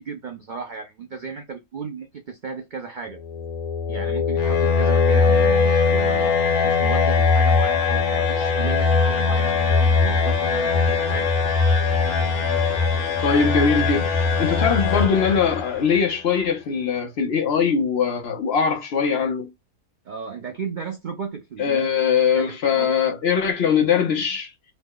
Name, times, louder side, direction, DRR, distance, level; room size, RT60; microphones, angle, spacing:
voice 1, 0.0-3.2 3.9-6.3 6.6-11.3 20.0-21.9 22.3-23.0, right 6 dB, 75° right, 0.4 m, -34 dB
sound 1, 3.1-16.0, left 5 dB, 80° left, 1.3 m, -20 dB
voice 2, 13.2-14.1 14.4-19.5 21.6-24.5, left 6 dB, 55° left, 0.7 m, -21 dB
3.0 x 2.1 x 3.6 m
omnidirectional pair, 1.5 m